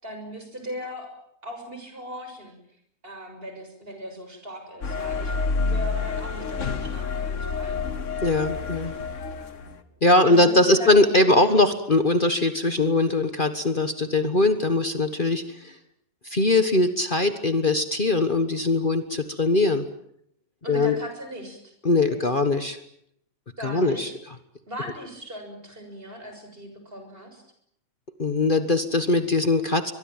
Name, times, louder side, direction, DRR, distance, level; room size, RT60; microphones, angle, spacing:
voice 1, 0.0-1.1 1.4-2.6 3.0-8.0 10.2-10.9 11.2-11.6 20.6-21.7 22.1-22.5 23.6-24.2 24.7-27.4, equal, 40° right, 5 dB, 7.0 m, -38 dB
sound 1, 4.8-9.8, left 4 dB, 60° left, 1.8 m, -29 dB
voice 2, 8.2-8.9 10.0-15.8 16.2-19.9 20.7-20.9 21.8-22.8 23.6-24.3 28.2-29.9, left 2 dB, 40° left, 9 dB, 1.6 m, -21 dB
24.0 x 22.0 x 9.0 m, 0.71 s
omnidirectional pair, 1.4 m